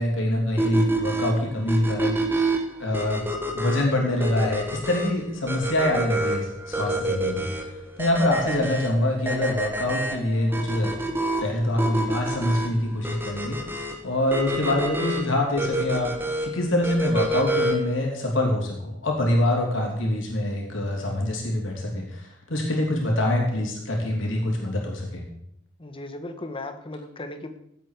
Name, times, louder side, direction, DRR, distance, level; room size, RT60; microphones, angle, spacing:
voice 1, 0.0-2.2 2.8-3.3 3.5-7.5 8.0-10.9 11.4-16.1 16.4-25.2, left 1 dB, 65° left, 0 dB, 3.0 m, -25 dB
sound 1, 0.6-18.0, right 1 dB, 10° right, 1.2 m, -28 dB
voice 2, 25.8-27.6, left 2 dB, 25° left, 7 dB, 1.2 m, -36 dB
16.5 x 8.1 x 4.7 m, 0.78 s
head